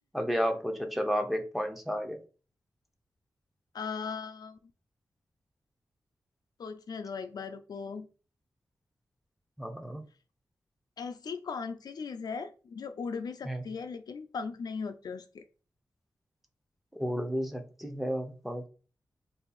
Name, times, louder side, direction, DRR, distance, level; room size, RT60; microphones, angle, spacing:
voice 1, 0.1-2.2 9.6-10.0 13.4-13.6 17.0-18.7, equal, ahead, 0.6 m, -32 dB
voice 2, 3.7-4.6 6.6-8.1 11.0-15.4, left 5 dB, 70° left, 0.4 m, -38 dB
2.7 x 2.4 x 3.9 m
wide cardioid pair, 80°, 7 cm